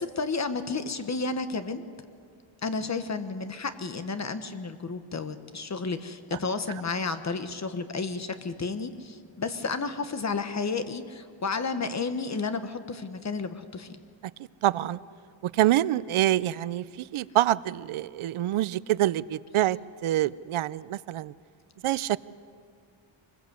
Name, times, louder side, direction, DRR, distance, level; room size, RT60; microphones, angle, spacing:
voice 1, 0.0-1.8 2.6-14.0, left 4 dB, 35° left, 9 dB, 1.2 m, -32 dB
voice 2, 14.6-15.0 15.4-16.8 17.1-21.3 21.8-22.2, right 14 dB, 85° right, 19 dB, 0.6 m, -26 dB
24.5 x 21.0 x 8.1 m, 2.2 s
wide cardioid pair, 160°, 48 cm